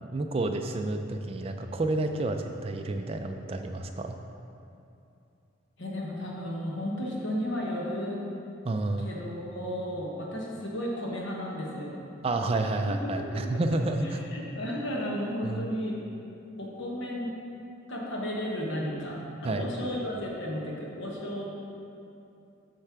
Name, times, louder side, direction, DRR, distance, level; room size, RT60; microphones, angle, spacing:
voice 1, 0.0-4.2 8.6-9.1 12.2-14.2 15.4-15.7 19.4-19.7, right 2 dB, 30° right, 5 dB, 0.3 m, -30 dB
voice 2, 5.8-8.2 9.0-12.0 12.6-12.7 13.0-13.8 14.0-16.0 16.6-17.3 17.9-21.4, equal, 65° left, -3 dB, 1.2 m, -34 dB
8.0 x 3.3 x 5.8 m, 2.7 s
head